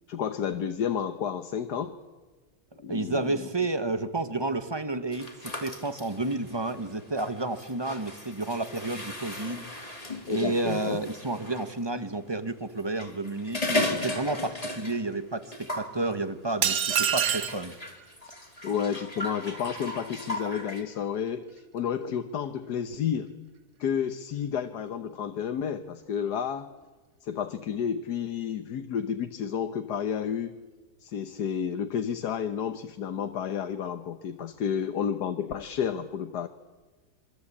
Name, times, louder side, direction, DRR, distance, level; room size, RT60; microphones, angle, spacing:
voice 1, 0.1-2.0 2.8-3.5 10.3-11.0 18.6-23.3 23.8-26.7 27.2-30.5 31.0-36.5, left 8 dB, 80° left, 8 dB, 1.6 m, -31 dB
voice 2, 2.9-9.6 10.3-17.7, right 2 dB, 15° right, 10 dB, 1.3 m, -31 dB
sound 1, 5.1-11.7 12.8-15.2 15.4-15.9 16.9-20.8, left 1 dB, 20° left, 3.3 m, -36 dB
sound 2, 16.6-17.6, right 8 dB, 80° right, 1.8 m, -25 dB
26.5 x 23.0 x 8.6 m, 1.3 s
omnidirectional pair, 1.7 m